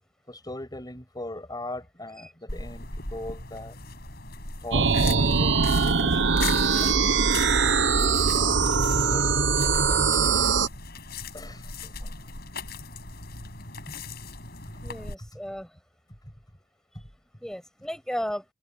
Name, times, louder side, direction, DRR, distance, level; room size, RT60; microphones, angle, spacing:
voice 1, 0.3-3.8 4.6-10.1 11.3-11.9 14.7-14.8 15.2-15.3, left 1 dB, 20° left, 7.0 m, -41 dB
sound 1, 2.5-15.1, left 4 dB, 55° left, 7.8 m, -39 dB
sound 2, 4.7-10.7, right 5 dB, 70° right, 1.0 m, -22 dB
voice 2, 14.8-15.7 17.4-18.5, equal, 5° left, 6.5 m, -34 dB
head